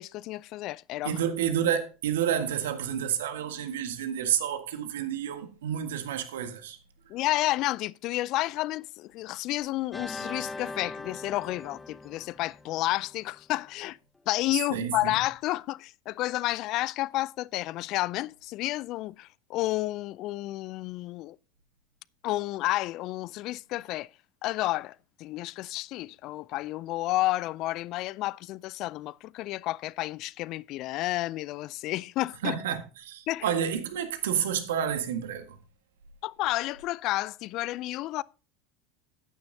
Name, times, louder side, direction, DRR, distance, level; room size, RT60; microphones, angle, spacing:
voice 1, 0.0-1.2 7.1-14.0 14.3-21.4 22.2-24.1 24.4-32.6 33.3-33.5 36.2-38.2, left 17 dB, 50° left, 0.4 m, -31 dB
voice 2, 1.0-6.8 14.7-15.2 32.4-35.6, right 9 dB, 75° right, 1.6 m, -30 dB
sound 1, 9.9-13.3, left 3 dB, 15° left, 0.8 m, -41 dB
13.5 x 9.6 x 2.7 m
hypercardioid pair, 85°, 0 cm